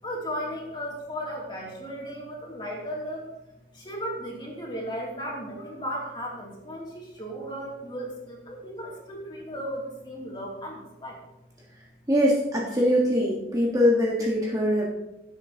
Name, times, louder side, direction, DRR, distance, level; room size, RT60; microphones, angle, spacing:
voice 1, 0.0-3.3 3.7-11.2, equal, 25° left, -3 dB, 2.8 m, -35 dB
voice 2, 12.1-14.9, equal, 20° right, -4 dB, 1.5 m, -22 dB
16.5 x 7.7 x 2.9 m, 0.96 s
head